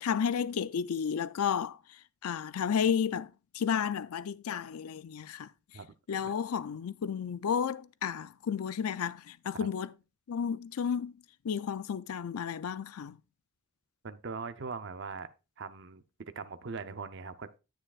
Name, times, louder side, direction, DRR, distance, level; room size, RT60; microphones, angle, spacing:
voice 1, 0.0-1.8 2.2-5.5 6.1-9.9 10.3-11.1 11.4-13.2, left 7 dB, 85° left, 0.4 m, -32 dB
voice 2, 14.0-15.3 15.6-16.0 16.4-17.5, right 4 dB, 55° right, 0.6 m, -40 dB
10.0 x 8.7 x 2.4 m
head